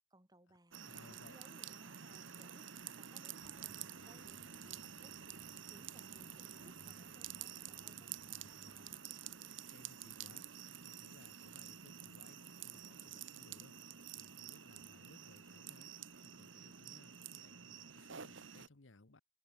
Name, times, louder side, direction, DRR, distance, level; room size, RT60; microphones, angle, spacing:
voice 1, 0.1-5.3 5.7-9.0, right 1 dB, 20° right, 5.9 m, -66 dB
voice 2, 0.7-1.4 9.7-10.5 10.8-13.8 14.1-15.9 16.2-19.2, left 2 dB, 80° left, 1.3 m, -62 dB
sound 1, 0.7-18.7, right 9 dB, 75° right, 1.6 m, -50 dB
sound 2, 3.4-9.0, left 1 dB, 45° left, 3.2 m, -66 dB
open air
head